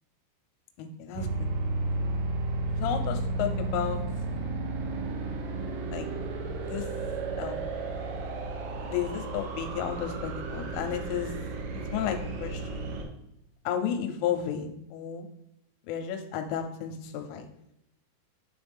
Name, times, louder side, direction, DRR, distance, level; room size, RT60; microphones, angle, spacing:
voice 1, 0.8-1.5 2.7-4.0 5.9-6.1 6.6-6.9 7.4-7.7 8.8-11.4 11.7-12.9 13.7-15.3 15.9-17.5, left 9 dB, 85° left, 6 dB, 3.1 m, -33 dB
sound 1, 1.2-13.1, right 2 dB, 85° right, 3.6 m, -33 dB
9.9 x 4.0 x 3.4 m, 0.81 s
omnidirectional pair, 5.8 m